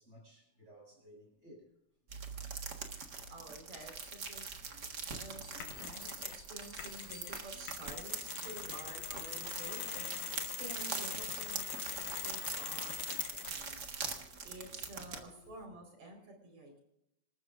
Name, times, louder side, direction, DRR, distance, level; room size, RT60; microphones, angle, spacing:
voice 1, 0.0-1.7 2.3-2.5 3.1-3.2 4.6-4.7 7.5-7.8 8.1-8.6 13.7-15.0 15.4-15.5, right 1 dB, 20° right, -2 dB, 7.6 m, -60 dB
sound 1, 2.1-15.2, right 5 dB, 40° right, 1.7 m, -43 dB
voice 2, 3.3-14.1 14.4-16.8, right 2 dB, 65° right, 2 dB, 5.8 m, -51 dB
Bell, 3.8-8.3, left 1 dB, 25° left, 3.2 m, -61 dB
Mechanisms, 5.6-6.4 6.8-13.6, left 9 dB, 85° left, 2.8 m, -42 dB
27.0 x 13.5 x 2.6 m, 0.79 s
omnidirectional pair, 3.4 m